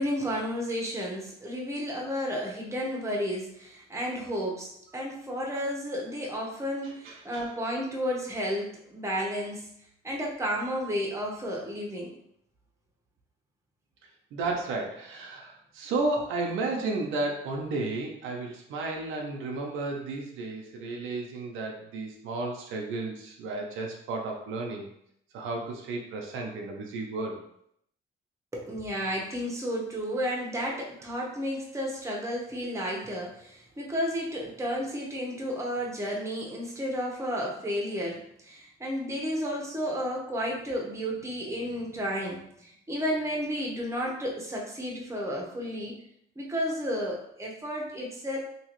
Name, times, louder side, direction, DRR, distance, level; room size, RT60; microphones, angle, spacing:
voice 1, 0.0-9.7 10.0-12.2 28.5-46.0 46.4-48.4, equal, 15° right, -2 dB, 1.0 m, -32 dB
voice 2, 6.8-7.4 14.3-24.9 25.3-27.4, right 3 dB, 90° right, 0 dB, 0.6 m, -33 dB
3.0 x 2.8 x 3.0 m, 0.72 s
cardioid pair, 90°, 20 cm